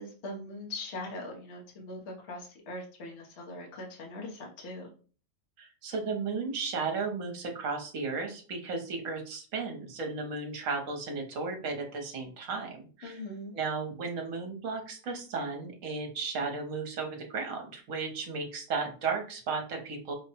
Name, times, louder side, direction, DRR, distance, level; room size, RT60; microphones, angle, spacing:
voice 1, 0.0-4.9 13.0-13.5, left 2 dB, 55° left, -1 dB, 1.1 m, -41 dB
voice 2, 5.6-13.2 13.5-20.1, right 4 dB, 60° right, 3 dB, 1.2 m, -34 dB
4.9 x 2.2 x 2.9 m, 0.40 s
omnidirectional pair, 1.6 m